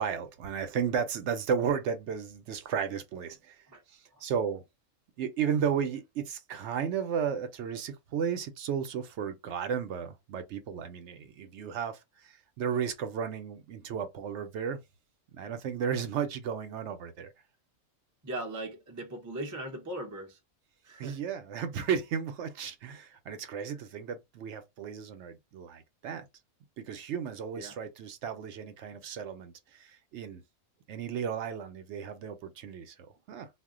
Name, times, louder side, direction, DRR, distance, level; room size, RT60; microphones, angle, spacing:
voice 1, 0.0-4.6 5.2-14.8 15.3-17.3 21.0-26.3 26.8-30.4 30.9-33.5, right 7 dB, 70° right, 0.8 m, -34 dB
voice 2, 18.2-20.4 20.8-21.2 27.6-27.8, right 1 dB, 30° right, 0.3 m, -39 dB
2.3 x 2.1 x 3.6 m
omnidirectional pair, 1.4 m